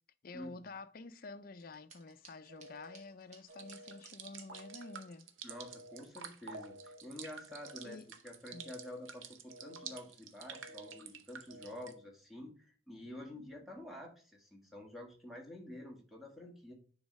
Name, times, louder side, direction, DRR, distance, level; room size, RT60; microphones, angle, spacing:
voice 1, 0.2-5.3 7.8-8.1 8.5-8.7 13.4-13.5, left 3 dB, 45° left, 0.5 m, -49 dB
sound 1, 1.6-4.9, right 4 dB, 35° right, 1.3 m, -60 dB
sound 2, 2.5-3.0 3.5-4.0 4.5-5.0 5.5-6.0 6.5-7.0 7.5-8.0 8.5-9.0 9.5-10.0 10.5-11.0 11.5-12.0, equal, 55° right, 1.8 m, -54 dB
sound 3, 3.5-11.9, right 7 dB, 85° right, 0.8 m, -50 dB
voice 2, 5.4-16.7, left 1 dB, ahead, 1.5 m, -49 dB
9.8 x 4.0 x 3.1 m
head